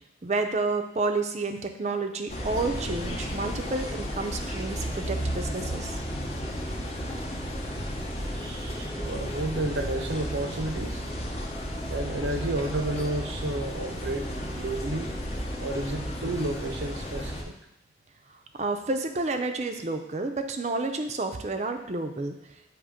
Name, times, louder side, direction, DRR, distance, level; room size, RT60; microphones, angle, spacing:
voice 1, 0.2-5.9 18.6-22.4, right 3 dB, 35° right, 6 dB, 0.5 m, -30 dB
sound 1, 2.3-17.4, equal, 35° left, 0.8 m, -33 dB
voice 2, 8.3-11.0 11.9-15.1 15.6-17.6, right 2 dB, 80° right, 6 dB, 0.7 m, -32 dB
7.3 x 3.0 x 4.9 m, 0.85 s
head